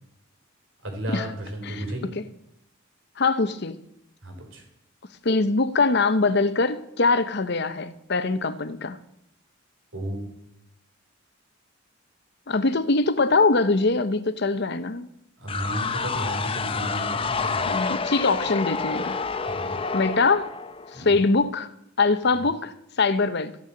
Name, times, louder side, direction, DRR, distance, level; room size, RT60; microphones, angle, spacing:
voice 1, 0.8-2.1 4.2-4.6 9.9-10.3 15.4-17.8 19.4-19.8 20.9-21.2 22.3-22.5, right 1 dB, 65° right, 3.9 m, -33 dB
voice 2, 3.2-3.8 5.2-9.0 12.5-15.1 17.7-19.2 19.9-20.5 20.9-21.7 22.0-23.6, left 3 dB, 55° left, 0.8 m, -23 dB
sound 1, 15.5-21.2, left 4 dB, 25° left, 0.6 m, -29 dB
15.0 x 6.6 x 8.5 m
head